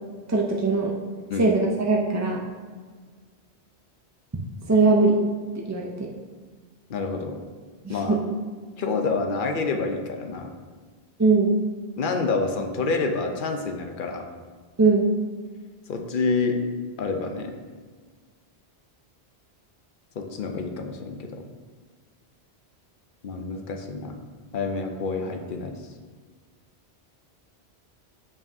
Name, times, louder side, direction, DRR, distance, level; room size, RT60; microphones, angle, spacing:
voice 1, 0.3-1.0 1.4-2.4 4.7-5.2 5.6-6.1 7.8-8.2 11.2-11.5 14.8-15.1, right 3 dB, 30° right, -1 dB, 0.3 m, -21 dB
voice 2, 6.9-7.4 7.9-8.2 8.8-10.5 12.0-14.3 15.9-16.6 17.0-17.6 20.2-21.4 23.2-24.2 24.5-25.7, left 4 dB, 55° left, 4 dB, 0.7 m, -28 dB
7.1 x 5.5 x 2.7 m, 1.5 s
omnidirectional pair, 1.1 m